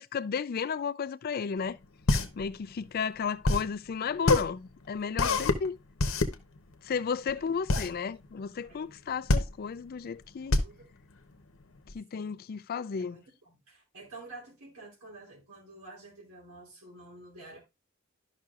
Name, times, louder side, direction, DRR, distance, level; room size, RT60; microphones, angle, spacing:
voice 1, 0.0-1.8 2.4-5.8 6.8-10.6 11.9-13.2, left 6 dB, 45° left, 0.3 m, -33 dB
sound 1, 1.6-11.9, left 2 dB, 65° left, 0.8 m, -28 dB
voice 2, 10.6-10.9 12.1-12.5 13.0-17.6, right 2 dB, 85° right, 2.9 m, -50 dB
12.0 x 5.7 x 2.4 m
head